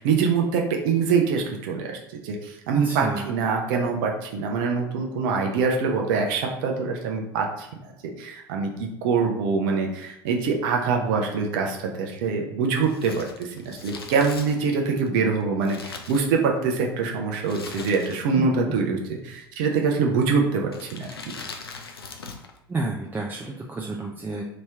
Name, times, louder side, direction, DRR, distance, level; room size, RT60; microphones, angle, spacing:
voice 1, 0.0-7.7 8.2-21.3, right 5 dB, 60° right, 2 dB, 0.7 m, -24 dB
voice 2, 2.7-3.3 18.3-18.7 22.7-24.4, right 2 dB, 15° right, -2 dB, 0.5 m, -30 dB
Crumpling crinkling, 12.8-16.8 17.4-18.5 18.7-18.8 19.6-20.0 20.7-22.6 22.8-22.9, left 4 dB, 85° left, 0.4 m, -41 dB
3.0 x 2.8 x 3.5 m, 0.82 s
figure-of-eight pair, 70°, 12 cm